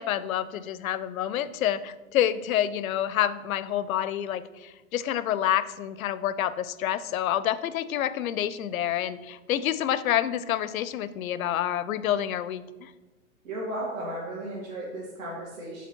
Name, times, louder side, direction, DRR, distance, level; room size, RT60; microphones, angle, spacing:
voice 1, 0.0-12.9, left 11 dB, 90° left, 15 dB, 0.6 m, -28 dB
voice 2, 13.4-15.9, right 1 dB, 75° right, -5 dB, 2.0 m, -35 dB
7.1 x 4.1 x 4.4 m, 1.1 s
hypercardioid pair, 160°, 40 cm